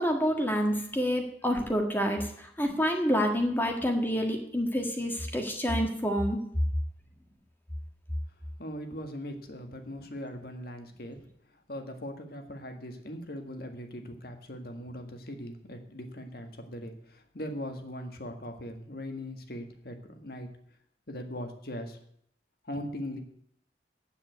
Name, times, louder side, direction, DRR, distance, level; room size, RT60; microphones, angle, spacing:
voice 1, 0.0-6.4, equal, 10° left, 2 dB, 1.6 m, -28 dB
voice 2, 8.6-11.2 11.7-20.5 21.1-22.0 22.7-23.2, equal, 60° left, 5 dB, 1.8 m, -40 dB
9.0 x 7.7 x 9.2 m, 0.68 s
head